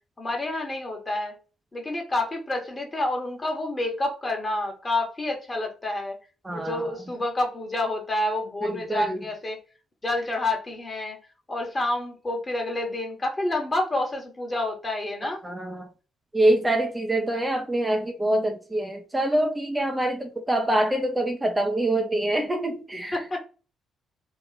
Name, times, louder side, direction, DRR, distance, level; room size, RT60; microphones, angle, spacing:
voice 1, 0.2-1.4 1.7-6.2 6.5-9.6 10.0-11.2 11.5-15.4 23.1-23.4, left 2 dB, 30° left, 1.4 m, -28 dB
voice 2, 6.4-6.8 8.6-9.2 15.4-15.9 16.3-23.1, right 1 dB, 15° right, 0.7 m, -25 dB
3.1 x 2.4 x 4.0 m
hypercardioid pair, 40°, 0 cm